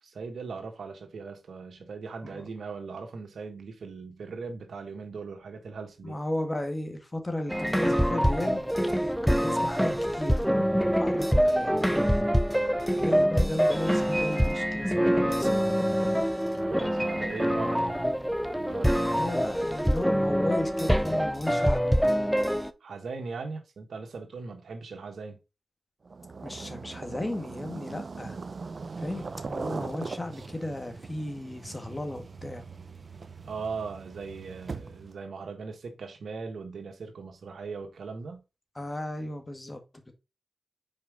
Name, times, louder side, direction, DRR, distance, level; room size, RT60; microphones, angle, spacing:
voice 1, 0.0-6.2 16.5-18.0 18.6-19.4 22.8-25.4 33.4-38.4, right 4 dB, 80° right, 1.6 m, -39 dB
voice 2, 6.0-9.0 9.2-11.9 13.0-15.8 19.1-21.9 26.4-28.4 29.0-32.7 38.8-40.1, left 1 dB, 25° left, 1.9 m, -35 dB
sound 1, 7.5-22.7, equal, ahead, 0.7 m, -25 dB
sound 2, 26.1-35.2, right 4 dB, 55° right, 0.6 m, -40 dB
5.5 x 4.7 x 5.1 m
cardioid pair, 65°, 0 cm